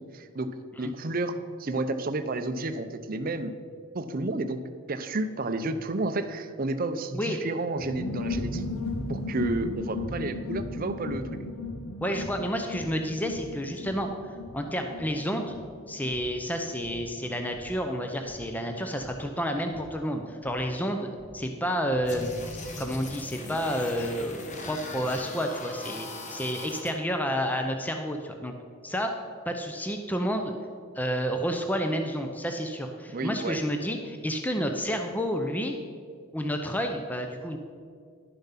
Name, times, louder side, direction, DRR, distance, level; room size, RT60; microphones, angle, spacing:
voice 1, 0.0-3.5 3.9-4.6 4.9-8.7 9.1-11.3 33.1-33.6, right 2 dB, 40° right, 9 dB, 0.6 m, -31 dB
sound 1, 7.8-24.1 24.3-24.4 24.6-25.1, left 2 dB, 75° left, 1.0 m, -38 dB
voice 2, 12.0-14.1 14.5-15.6 15.9-21.1 21.3-22.3 22.8-28.5 28.8-29.1 29.5-30.5 30.9-35.8 36.3-37.6, equal, 10° left, 4 dB, 0.6 m, -30 dB
sound 2, 22.1-26.9, left 2 dB, 35° left, 1.2 m, -40 dB
11.0 x 7.2 x 5.7 m, 2.1 s
head